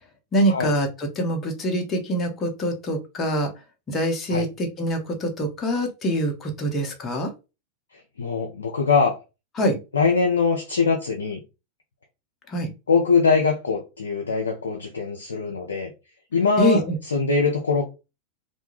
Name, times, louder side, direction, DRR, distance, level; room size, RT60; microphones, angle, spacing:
voice 1, 0.3-3.5 3.9-7.3 9.6-9.8 12.5-12.7 16.6-17.0, equal, 30° left, 0.8 m, -24 dB
voice 2, 8.2-9.2 9.9-11.4 12.9-15.9 16.3-17.9, left 5 dB, 85° left, 0.5 m, -22 dB
2.3 x 2.1 x 3.0 m
hypercardioid pair, 95°, 0 cm